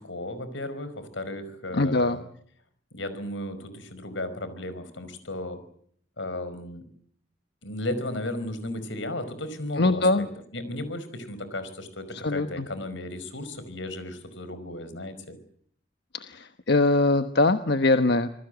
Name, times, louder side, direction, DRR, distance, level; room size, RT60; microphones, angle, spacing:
voice 1, 0.0-2.2 2.9-5.6 6.2-6.8 7.6-10.0 10.5-15.4, left 1 dB, 80° left, 13 dB, 5.2 m, -35 dB
voice 2, 1.7-2.2 9.8-10.3 12.1-12.7 16.2-18.3, left 2 dB, 60° left, 9 dB, 1.1 m, -22 dB
27.0 x 20.5 x 8.1 m, 0.65 s
head